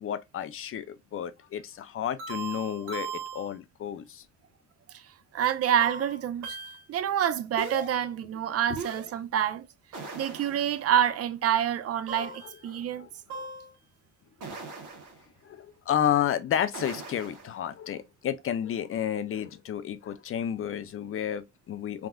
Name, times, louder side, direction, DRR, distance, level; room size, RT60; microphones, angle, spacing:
voice 1, 0.0-4.2 12.2-12.3 12.7-13.5 15.4-22.1, left 9 dB, 45° left, 0.4 m, -31 dB
sound 1, 2.2-3.5 5.8-6.9 7.6-8.0 8.8-9.1 9.9-10.9 12.1-12.6 13.3-13.7 14.4-15.2 16.7-17.5, right 4 dB, 90° right, 1.1 m, -39 dB
voice 2, 5.3-6.6 6.9-9.6 10.1-13.1, right 9 dB, 50° right, 0.4 m, -27 dB
3.5 x 2.4 x 2.2 m
cardioid pair, 90°, 30 cm